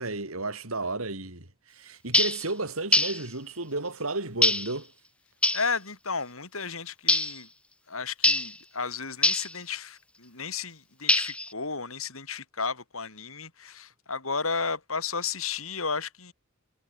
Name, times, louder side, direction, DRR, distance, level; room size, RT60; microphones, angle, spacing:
voice 1, 0.0-4.9, right 2 dB, 80° right, 4.8 m, -33 dB
sound 1, 2.1-2.4 2.9-3.2 4.4-4.7 5.4-5.7 7.1-7.4 8.2-8.5 9.2-9.5 11.1-11.5, left 2 dB, 5° left, 0.7 m, -23 dB
voice 2, 5.5-7.5 7.9-16.3, left 5 dB, 75° left, 7.5 m, -33 dB
head